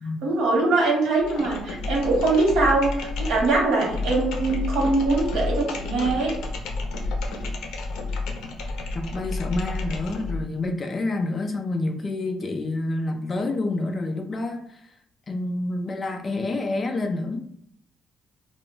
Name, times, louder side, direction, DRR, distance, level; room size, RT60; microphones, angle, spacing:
voice 1, 0.2-6.4, right 3 dB, 90° right, -1 dB, 1.0 m, -22 dB
sound 1, 1.2-10.5, left 3 dB, 90° left, 0.5 m, -30 dB
voice 2, 8.9-14.6 15.3-17.5, left 2 dB, 25° left, 4 dB, 0.3 m, -28 dB
2.1 x 2.0 x 3.7 m, 0.69 s
cardioid pair, 175°, 0 cm